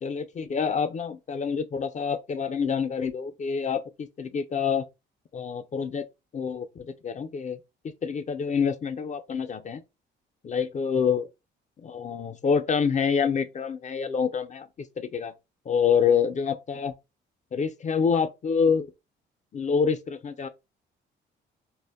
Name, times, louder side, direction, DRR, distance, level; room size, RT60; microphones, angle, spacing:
voice 1, 0.0-4.9 5.3-6.0 6.3-7.6 8.0-9.8 10.4-11.3 11.8-14.7 15.0-15.3 15.7-16.9 17.5-18.9 19.5-20.5, left 6 dB, 40° left, 0.4 m, -27 dB
2.1 x 2.0 x 3.3 m
cardioid pair, 90°, 20 cm